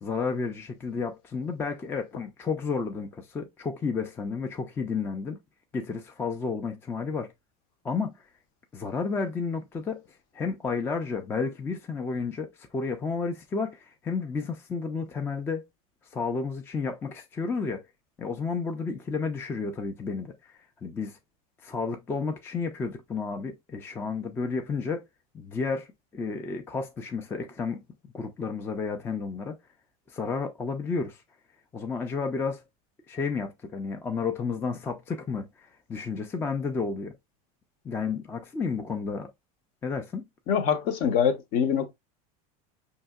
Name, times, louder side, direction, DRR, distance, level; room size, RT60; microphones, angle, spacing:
voice 1, 0.0-5.4 5.7-7.3 7.8-8.1 8.7-10.0 10.3-15.6 16.1-17.8 18.2-21.2 21.6-25.0 25.3-27.8 28.1-29.5 30.1-31.2 31.7-32.6 33.1-37.1 37.8-39.3 39.8-40.2, left 4 dB, 10° left, 0.3 m, -31 dB
voice 2, 40.5-41.9, left 7 dB, 50° left, 0.7 m, -24 dB
5.3 x 2.7 x 2.2 m
supercardioid pair, 155°, 19 cm